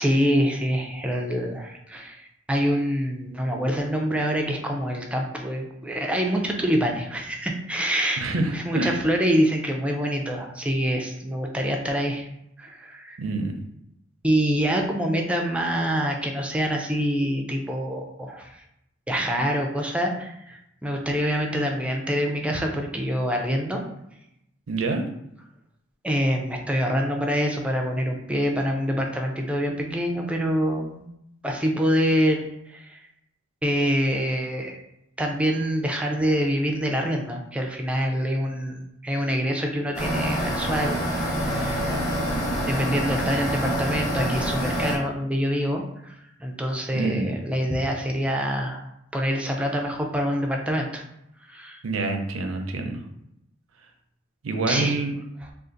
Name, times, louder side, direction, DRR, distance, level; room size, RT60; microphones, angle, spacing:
voice 1, 0.0-8.2 8.5-12.3 12.6-13.2 14.2-18.6 19.1-23.8 26.0-31.1 31.4-33.0 33.6-34.8 35.2-41.0 41.3-41.9 42.7-46.1 46.4-48.8 49.1-51.0 51.5-51.8 54.7-55.0, equal, 5° right, 1 dB, 0.4 m, -25 dB
voice 2, 8.2-9.0 13.2-13.6 24.7-25.0 46.9-47.4 51.8-53.0 54.4-55.1, right 3 dB, 75° right, 4 dB, 0.5 m, -26 dB
sound 1, 39.9-44.9, equal, 15° left, 0.9 m, -26 dB
2.5 x 2.4 x 3.8 m, 0.80 s
head